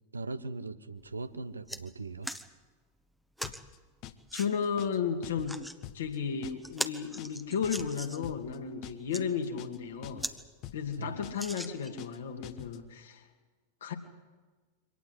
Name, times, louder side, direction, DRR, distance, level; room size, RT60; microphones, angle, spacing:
voice 1, 0.1-2.3 11.0-11.1, right 3 dB, 80° right, 12 dB, 1.0 m, -39 dB
sound 1, 1.0-1.1 1.4-1.8 2.2-2.5 3.4-3.6 4.3-4.5 5.3-5.8 6.2-6.3 6.6-8.3 8.9-9.2 9.8-9.9 10.2-10.4 10.7-10.8 11.3-12.1 12.7-12.8, equal, ahead, 1.2 m, -39 dB
sound 2, 3.4-3.8 4.0-4.4 4.6-5.0 5.2-5.6 5.8-6.2 6.4-6.8 7.0-7.4 7.6-8.6 8.8-9.2 9.4-9.8 10.0-10.4 10.6-11.0 11.2-11.6 11.8-12.2 12.4-12.8, left 12 dB, 40° left, 1.3 m, -46 dB
voice 2, 4.3-10.3 10.7-13.3 13.8-13.9, left 6 dB, 65° left, 4 dB, 2.8 m, -34 dB
24.0 x 18.5 x 8.1 m, 1.3 s
figure-of-eight pair, 90°, 0 cm